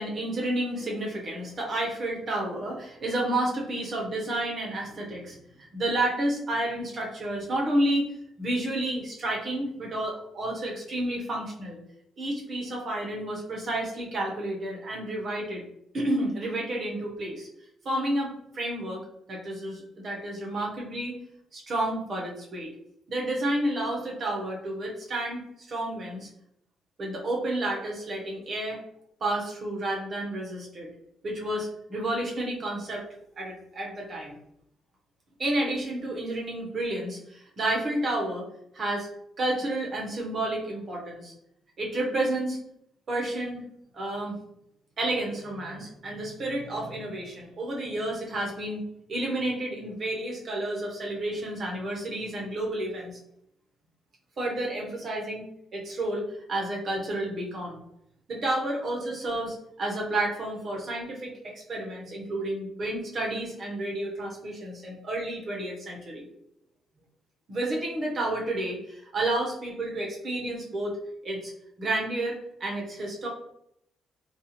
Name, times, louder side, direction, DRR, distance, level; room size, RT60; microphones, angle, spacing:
voice 1, 0.0-8.1 8.4-11.8 12.2-15.6 15.9-17.5 17.8-19.0 19.3-21.2 21.5-22.7 23.1-26.3 27.0-28.8 29.2-30.9 31.2-33.0 33.4-34.4 35.4-38.5 38.7-39.1 39.4-41.3 41.8-42.6 43.1-43.6 43.9-44.4 45.0-48.8 49.1-53.1 54.4-55.5 55.7-56.2 56.5-57.8 58.3-66.3 67.5-71.0 71.2-71.5 71.8-73.3, right 1 dB, 45° right, -2 dB, 0.8 m, -30 dB
2.4 x 2.3 x 2.9 m, 0.75 s
cardioid pair, 90°, 0 cm